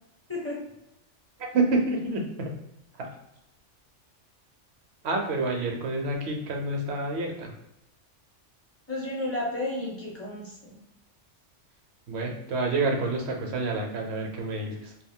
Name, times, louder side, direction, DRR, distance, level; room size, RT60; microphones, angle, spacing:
voice 1, 1.5-2.5 3.0-3.1 5.0-7.5 12.1-14.9, right 3 dB, 70° right, 1 dB, 0.8 m, -28 dB
voice 2, 8.9-10.7, left 1 dB, 15° left, -3 dB, 0.6 m, -32 dB
2.3 x 2.2 x 3.6 m, 0.84 s
omnidirectional pair, 1.3 m